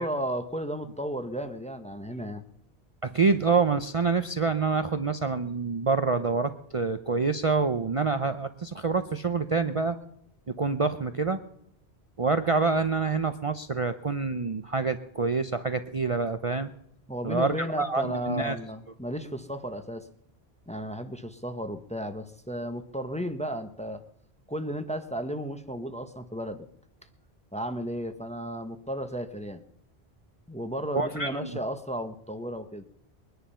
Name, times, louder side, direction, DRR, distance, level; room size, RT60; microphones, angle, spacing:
voice 1, 0.0-2.4 17.1-20.1 20.7-24.0 24.5-26.7 27.5-29.6 30.5-32.8, equal, 5° left, 8 dB, 0.9 m, -34 dB
voice 2, 3.0-10.0 10.5-11.4 12.2-16.7 17.2-18.6 30.9-31.5, right 4 dB, 35° right, 9 dB, 0.7 m, -27 dB
22.5 x 10.5 x 5.6 m, 0.75 s
omnidirectional pair, 1.1 m